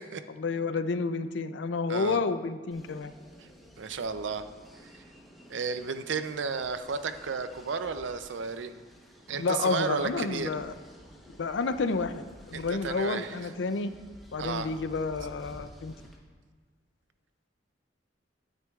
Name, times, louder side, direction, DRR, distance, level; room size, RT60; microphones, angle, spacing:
voice 1, 0.3-3.1 9.4-10.7 11.3-13.9 14.3-15.9, left 4 dB, 80° left, 11 dB, 0.5 m, -30 dB
voice 2, 1.9-2.2 3.4-3.5 3.8-4.4 4.9-5.0 5.5-8.8 9.3-10.5 12.5-13.5 14.4-14.7, right 5 dB, 90° right, 10 dB, 0.5 m, -33 dB
sound 1, 2.7-16.2, equal, ahead, 1.0 m, -52 dB
12.0 x 9.1 x 2.4 m, 1.5 s
head